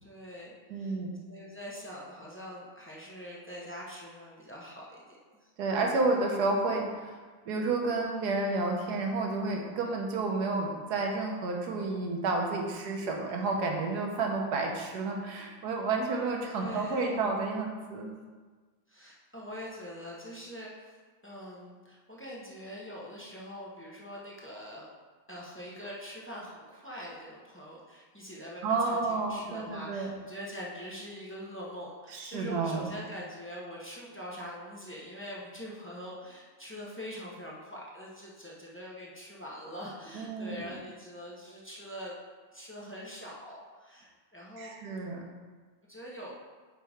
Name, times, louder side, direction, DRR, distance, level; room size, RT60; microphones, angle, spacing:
voice 1, 0.0-0.9 1.3-5.5 16.5-17.2 18.9-20.9 21.2-24.9 25.3-42.1 42.5-44.8 45.9-46.3, equal, 10° left, -5 dB, 0.5 m, -43 dB
voice 2, 0.7-1.1 5.6-7.2 7.5-18.1 28.6-30.1 32.1-32.9 40.1-40.7 44.6-45.2, right 3 dB, 60° right, 1 dB, 1.4 m, -31 dB
8.7 x 5.2 x 3.6 m, 1.4 s
omnidirectional pair, 2.2 m